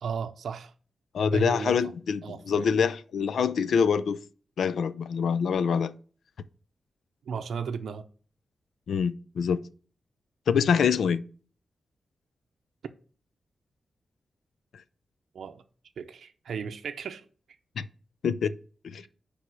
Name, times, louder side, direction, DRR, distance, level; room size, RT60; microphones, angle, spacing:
voice 1, 0.0-0.7 1.3-1.8 2.2-2.7 7.3-8.1 15.3-15.6 16.0-17.2 19.0-19.1, right 6 dB, 80° right, 0.6 m, -35 dB
voice 2, 1.1-4.2 4.6-5.9 8.9-9.6 10.5-11.2 17.8-17.9 18.2-18.6 18.8-19.0, left 6 dB, 85° left, 0.4 m, -25 dB
9.6 x 3.5 x 6.1 m
wide cardioid pair, 165°, 0 cm